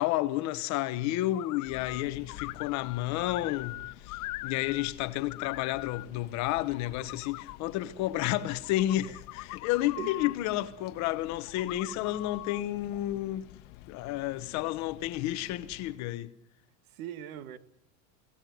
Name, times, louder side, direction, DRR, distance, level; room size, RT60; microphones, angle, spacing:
voice 1, 0.0-4.2 4.4-13.5 13.9-16.3, left 15 dB, 40° left, 1.1 m, -31 dB
sound 1, 1.3-2.0 2.3-4.9 5.2-6.1 6.6-7.6 8.5-10.3 11.5-12.6, left 20 dB, 80° left, 0.8 m, -42 dB
sound 2, 1.6-16.0, left 15 dB, 55° left, 1.7 m, -51 dB
voice 2, 10.0-10.3 12.1-12.2 16.9-17.6, right 10 dB, 70° right, 2.1 m, -41 dB
24.5 x 18.0 x 9.4 m
supercardioid pair, 155°, 43 cm